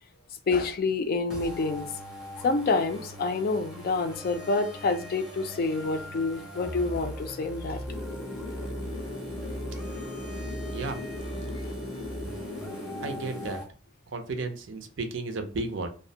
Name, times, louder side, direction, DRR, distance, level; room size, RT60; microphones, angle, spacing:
voice 1, 0.5-1.8 2.4-7.8, left 3 dB, 45° left, 0.3 m, -27 dB
sound 1, 1.3-13.7, equal, 5° right, 0.5 m, -40 dB
sound 2, 7.9-13.5, left 2 dB, 90° left, 0.6 m, -38 dB
voice 2, 10.7-11.0 13.0-13.6 14.1-15.9, right 3 dB, 65° right, 0.5 m, -33 dB
2.5 x 2.1 x 2.7 m
head